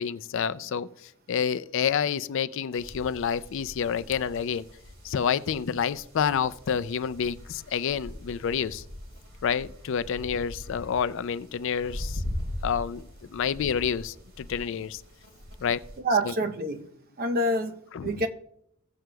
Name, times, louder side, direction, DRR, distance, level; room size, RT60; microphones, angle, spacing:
voice 1, 0.0-4.7 5.0-8.8 9.4-12.2 12.6-15.0 15.6-15.8 16.2-16.3 17.9-18.3, left 7 dB, 65° left, 0.4 m, -29 dB
sound 1, 2.7-16.0, left 1 dB, 75° right, 3.1 m, -41 dB
voice 2, 16.0-16.9 17.2-18.3, right 1 dB, 45° right, 0.7 m, -27 dB
17.0 x 7.7 x 2.3 m
head